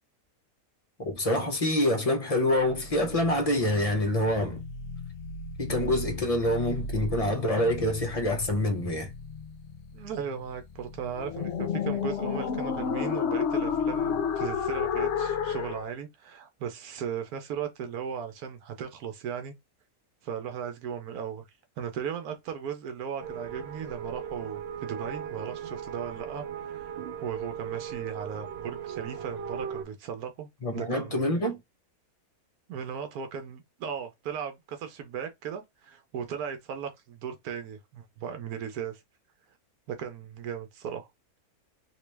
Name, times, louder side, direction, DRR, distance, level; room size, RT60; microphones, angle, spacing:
voice 1, 1.0-4.6 5.6-9.1 30.6-31.6, left 1 dB, 30° left, 0.7 m, -26 dB
sound 1, 2.6-15.8, left 6 dB, 65° left, 0.8 m, -33 dB
voice 2, 9.9-19.5 20.2-21.5 21.8-31.2 32.7-39.0 39.9-41.1, right 7 dB, 85° right, 1.1 m, -37 dB
sound 2, 23.2-29.8, right 8 dB, 65° right, 0.7 m, -38 dB
3.0 x 2.8 x 3.3 m
omnidirectional pair, 1.5 m